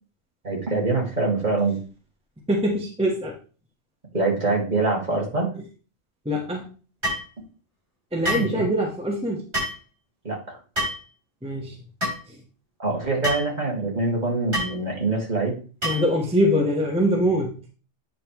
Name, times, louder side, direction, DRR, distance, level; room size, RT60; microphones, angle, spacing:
voice 1, 0.4-1.8 4.1-5.5 8.3-8.7 10.2-10.6 12.8-15.6, right 3 dB, 40° right, -2 dB, 2.4 m, -24 dB
voice 2, 2.5-3.4 6.2-6.7 8.1-9.4 11.4-11.8 12.3-12.4 15.8-17.6, equal, 5° right, -1 dB, 1.2 m, -23 dB
sound 1, 7.0-7.3 8.2-8.5 9.5-9.8 10.8-11.0 12.0-12.2 13.2-13.5 14.5-14.7 15.8-16.1, equal, 65° right, 4.3 m, -26 dB
8.8 x 5.4 x 3.1 m, 0.36 s
omnidirectional pair, 1.2 m